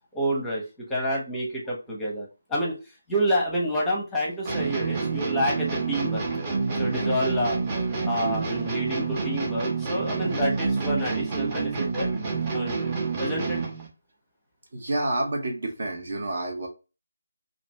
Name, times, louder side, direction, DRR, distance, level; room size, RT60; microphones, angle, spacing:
voice 1, 0.1-6.2 6.7-7.6 8.0-12.1 12.5-12.8 13.2-13.6, equal, 10° left, -3 dB, 0.7 m, -28 dB
sound 1, 4.5-13.9, right 4 dB, 25° right, 0.8 m, -28 dB
voice 2, 14.7-16.7, right 2 dB, 55° right, 2 dB, 0.9 m, -29 dB
2.6 x 2.6 x 3.0 m, 0.31 s
figure-of-eight pair, 160°, 0 cm